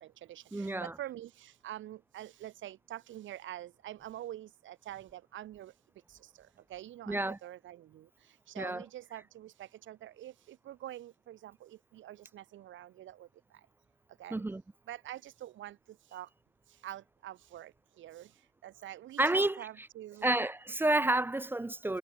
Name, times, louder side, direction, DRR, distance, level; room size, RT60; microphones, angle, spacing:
voice 1, 0.0-1.3 1.6-5.7 6.7-8.0 8.5-9.5 9.9-10.3 10.7-13.3 14.2-14.4 14.9-15.8 16.1-16.3 16.8-17.7 18.0-18.3 18.6-20.3, right 13 dB, 75° right, 1.2 m, -45 dB
voice 2, 0.5-1.0 7.1-7.4 8.6-8.9 14.3-14.6 19.2-19.9 20.2-22.0, right 2 dB, 10° right, 0.3 m, -30 dB
cardioid pair, 90°, 20 cm